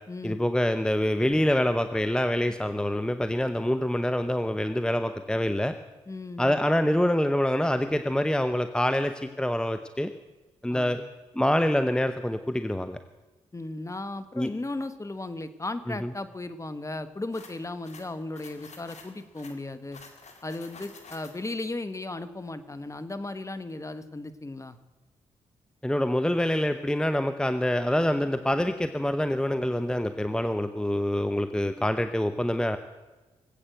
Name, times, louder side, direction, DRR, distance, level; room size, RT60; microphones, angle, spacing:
voice 1, 0.2-5.7 6.4-10.1 10.6-11.0 11.3-13.0 14.3-14.5 16.0-16.1 25.8-32.8, left 1 dB, 5° left, 9 dB, 0.9 m, -26 dB
voice 2, 6.1-6.6 10.7-11.0 13.5-20.0 20.4-24.8, left 2 dB, 25° left, 11 dB, 1.3 m, -36 dB
sound 1, 17.3-21.7, left 4 dB, 60° left, 2.3 m, -50 dB
20.0 x 8.6 x 7.8 m, 1.2 s
supercardioid pair, 45°, 13 cm